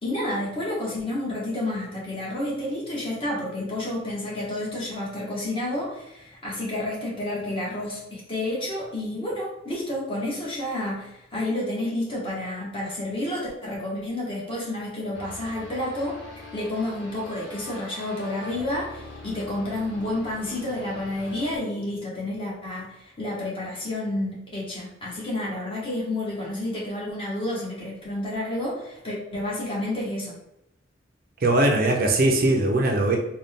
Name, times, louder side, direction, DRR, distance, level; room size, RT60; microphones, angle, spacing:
voice 1, 0.0-16.2 16.5-30.3, left 1 dB, 30° left, -5 dB, 1.3 m, -30 dB
sound 1, 15.1-21.6, left 2 dB, 75° left, 1.4 m, -43 dB
voice 2, 31.4-33.2, right 2 dB, 50° right, 2 dB, 0.5 m, -20 dB
3.9 x 2.3 x 3.5 m, 0.85 s
head